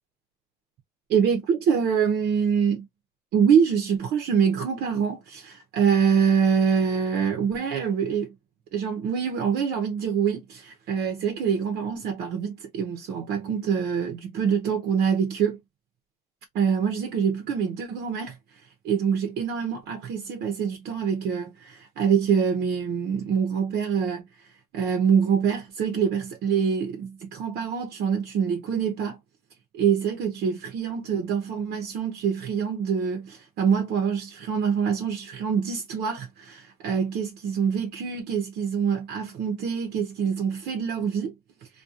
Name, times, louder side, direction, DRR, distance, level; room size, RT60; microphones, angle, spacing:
voice 1, 1.1-2.9 3.3-8.3 8.7-15.6 16.5-18.4 18.8-24.2 24.7-29.2 29.7-41.3, right 7 dB, 75° right, 0.6 m, -25 dB
2.4 x 2.2 x 2.6 m
cardioid pair, 110°, 17 cm